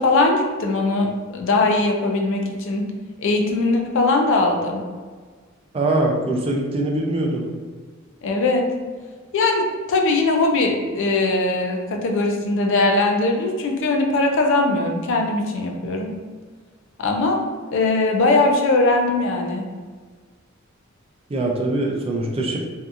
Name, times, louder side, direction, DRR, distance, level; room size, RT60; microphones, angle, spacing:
voice 1, 0.0-2.8 3.2-4.8 8.2-8.7 9.3-16.1 17.0-17.4 17.7-19.6, left 2 dB, 65° left, 3 dB, 0.4 m, -20 dB
voice 2, 5.7-7.5 21.3-22.6, right 2 dB, 30° right, 0 dB, 0.3 m, -22 dB
2.7 x 2.3 x 2.4 m, 1.5 s
head